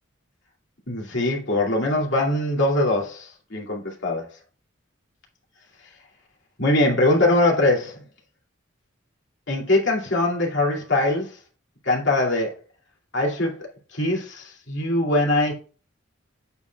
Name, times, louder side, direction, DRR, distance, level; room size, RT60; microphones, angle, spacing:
voice 1, 0.9-4.2 6.6-8.0 9.5-11.3 11.8-12.6 13.1-13.6 13.9-15.5, left 2 dB, 60° left, 2.5 m, -22 dB
8.2 x 7.1 x 2.3 m
head